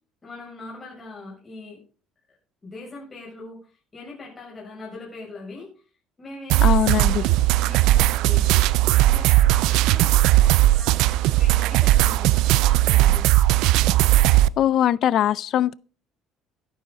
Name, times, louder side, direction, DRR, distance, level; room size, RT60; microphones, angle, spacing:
voice 1, 0.2-1.8 2.6-5.7 6.2-6.7 7.2-8.6 8.9-13.2, left 3 dB, 20° left, 6.9 m, -41 dB
sound 1, 6.5-14.5, right 15 dB, 75° right, 0.5 m, -18 dB
voice 2, 6.6-7.2 14.6-15.7, left 11 dB, 50° left, 0.5 m, -21 dB
12.5 x 11.5 x 4.0 m
cardioid pair, 140°, 0 cm